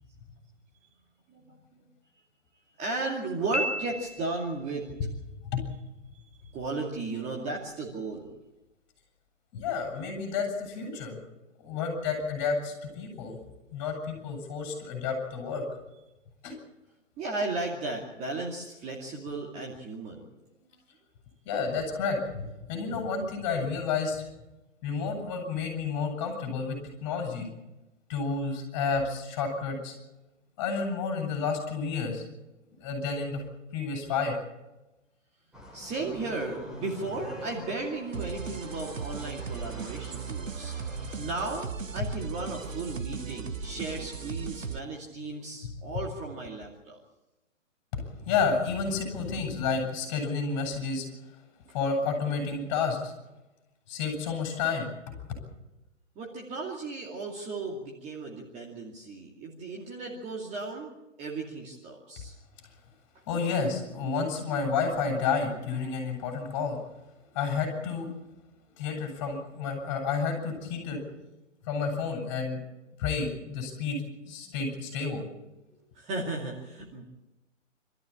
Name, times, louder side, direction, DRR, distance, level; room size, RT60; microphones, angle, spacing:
voice 1, 2.8-4.9 6.1-8.3 17.2-20.2 35.7-40.7 41.2-47.0 56.2-60.9 61.2-62.3 75.9-77.0, right 3 dB, 15° right, -1 dB, 2.5 m, -35 dB
Piano, 3.5-4.6, right 1 dB, 65° left, 1.6 m, -33 dB
voice 2, 9.5-11.2 11.6-13.4 13.7-15.6 16.4-16.6 21.4-24.2 24.8-27.5 28.1-29.9 30.6-32.2 32.8-33.4 33.7-34.4 47.9-51.1 51.7-53.1 53.9-54.9 63.3-66.8 67.3-68.1 68.8-71.0 71.6-72.6 73.0-75.2 75.6-75.7, left 5 dB, 30° left, 3 dB, 7.8 m, -30 dB
sound 1, 35.5-41.2, equal, ahead, 3.2 m, -46 dB
sound 2, 38.1-44.8, right 6 dB, 85° right, 1.0 m, -37 dB
26.0 x 14.0 x 8.6 m, 1.0 s
figure-of-eight pair, 135°, 38 cm